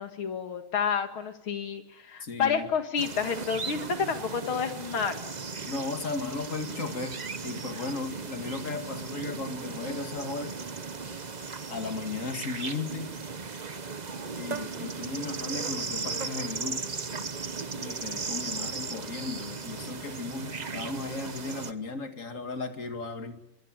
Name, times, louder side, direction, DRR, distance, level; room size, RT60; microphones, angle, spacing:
voice 1, 0.0-5.3, left 6 dB, 90° left, 7 dB, 2.8 m, -30 dB
voice 2, 2.2-2.7 5.7-10.6 11.7-13.2 14.3-16.9 17.7-23.4, left 4 dB, 40° left, 7 dB, 2.4 m, -36 dB
sound 1, 3.0-21.7, right 4 dB, 35° right, 0.7 m, -36 dB
23.5 x 23.5 x 9.0 m, 0.89 s
omnidirectional pair, 2.2 m